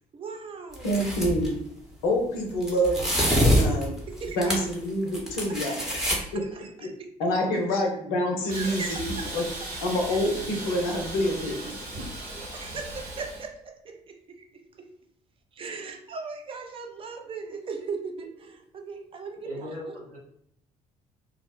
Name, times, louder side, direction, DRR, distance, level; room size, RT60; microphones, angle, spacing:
voice 1, 0.1-0.9 4.1-4.5 5.7-6.3 6.5-6.7 7.5-7.6 8.5-8.9 9.1-9.2 12.2-14.9 15.5-19.9, right 4 dB, 30° right, 5 dB, 0.4 m, -39 dB
sound 1, 0.7-1.5 2.6-4.7 5.1-6.2, equal, 5° right, 0.8 m, -25 dB
voice 2, 0.8-1.5 2.0-3.0 3.6-4.0 4.4-6.4 6.8-6.9 7.2-9.0 9.3-9.4 9.8-12.0, equal, 65° left, 1 dB, 0.6 m, -27 dB
Hiss, 8.5-13.5, right 1 dB, 55° right, 1.0 m, -37 dB
voice 3, 19.4-20.2, equal, 85° right, -4 dB, 0.6 m, -37 dB
2.3 x 2.0 x 3.1 m, 0.71 s
figure-of-eight pair, 45°, 19 cm